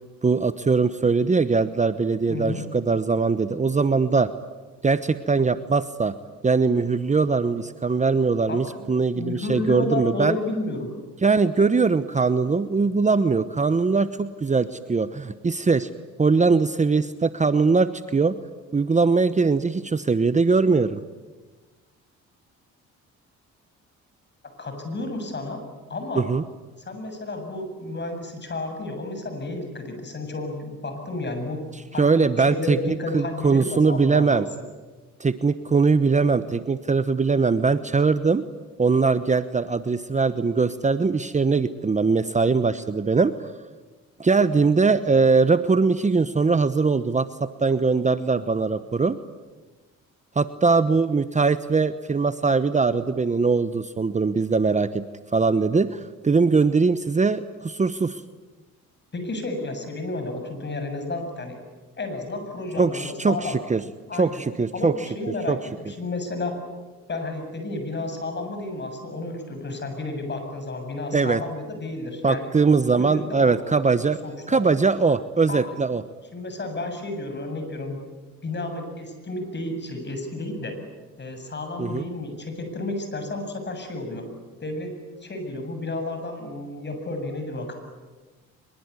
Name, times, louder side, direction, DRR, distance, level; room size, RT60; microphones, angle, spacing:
voice 1, 0.2-4.3 4.8-6.1 6.4-10.4 11.2-15.9 16.2-18.4 18.7-21.0 26.1-26.4 32.0-34.5 35.2-38.4 38.8-43.5 44.2-49.2 50.3-55.0 55.3-58.2 62.8-63.8 64.2-64.9 65.5-65.6 71.1-71.4 72.2-74.2 74.5-76.0 81.8-82.0, right 4 dB, 25° right, 12 dB, 1.1 m, -21 dB
voice 2, 2.3-2.6 8.5-8.9 9.1-10.9 24.4-25.6 25.9-26.2 26.9-31.6 31.9-34.5 59.1-61.6 62.0-63.5 64.1-64.4 64.7-66.5 67.1-72.5 73.0-73.6 74.2-74.6 75.5-75.7 76.3-78.0 78.4-80.7 81.2-84.3 84.6-84.9 85.2-87.7, left 2 dB, 35° left, 6 dB, 7.6 m, -31 dB
24.0 x 22.5 x 9.8 m, 1.2 s
cardioid pair, 90°, 30 cm